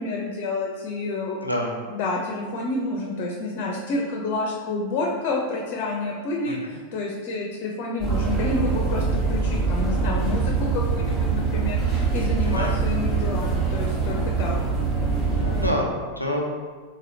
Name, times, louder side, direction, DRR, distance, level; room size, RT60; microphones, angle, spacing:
voice 1, 0.0-1.5 1.9-14.6, left 2 dB, 40° left, 0 dB, 0.5 m, -29 dB
voice 2, 1.4-1.7 6.4-6.5 12.4-12.7 15.3-16.4, equal, 90° right, -1 dB, 0.5 m, -27 dB
sound 1, 8.0-15.7, right 4 dB, 15° right, 1.1 m, -24 dB
4.1 x 3.0 x 2.7 m, 1.5 s
figure-of-eight pair, 90°, 0 cm